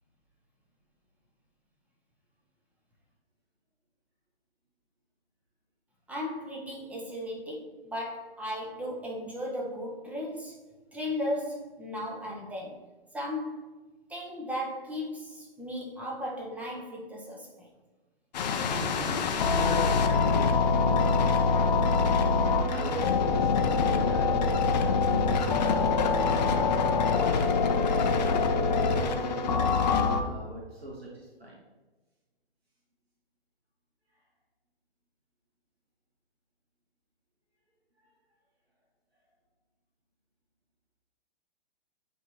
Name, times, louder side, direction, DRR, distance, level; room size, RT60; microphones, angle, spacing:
voice 1, 6.1-10.6 10.9-12.8 13.1-13.6 14.1-17.7, left 1 dB, 5° right, -3 dB, 0.9 m, -36 dB
sound 1, 18.3-30.2, left 4 dB, 45° left, 0.7 m, -25 dB
voice 2, 18.5-26.9 27.2-28.3 28.8-31.6 38.0-38.1, equal, 85° right, -3 dB, 1.5 m, -40 dB
9.0 x 3.6 x 2.9 m, 1.2 s
figure-of-eight pair, 120°, 30 cm